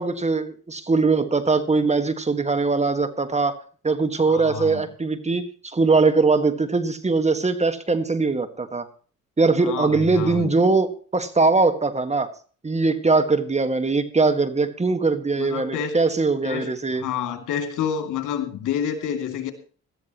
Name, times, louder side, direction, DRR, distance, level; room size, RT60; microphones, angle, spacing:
voice 1, 0.0-3.6 3.8-8.9 9.4-12.3 12.6-17.0, right 3 dB, 20° right, 1.7 m, -21 dB
voice 2, 4.3-4.8 9.6-10.5 15.4-16.0 16.4-19.5, left 8 dB, 85° left, 2.8 m, -29 dB
18.5 x 13.5 x 3.1 m
cardioid pair, 90°, 30 cm